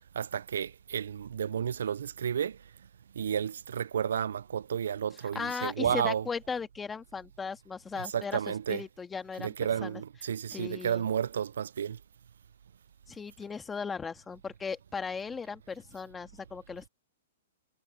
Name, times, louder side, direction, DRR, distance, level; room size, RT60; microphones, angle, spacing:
voice 1, 0.2-2.6 3.2-6.2 8.1-8.8 9.4-12.0, right 8 dB, 85° right, 0.4 m, -32 dB
voice 2, 5.2-10.0 10.5-11.1 13.1-16.9, left 5 dB, 10° left, 1.6 m, -37 dB
hypercardioid pair, 145°, 0 cm